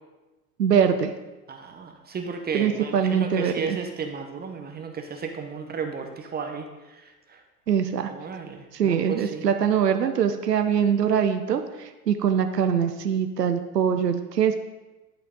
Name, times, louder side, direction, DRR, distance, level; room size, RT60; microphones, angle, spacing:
voice 1, 0.6-1.1 2.5-3.8 7.7-8.1 8.7-14.6, right 8 dB, 90° right, 8 dB, 0.6 m, -23 dB
voice 2, 1.5-7.4 8.1-9.5, right 5 dB, 20° right, 4 dB, 0.8 m, -34 dB
11.0 x 5.6 x 3.7 m, 1.1 s
figure-of-eight pair, 85°, 47 cm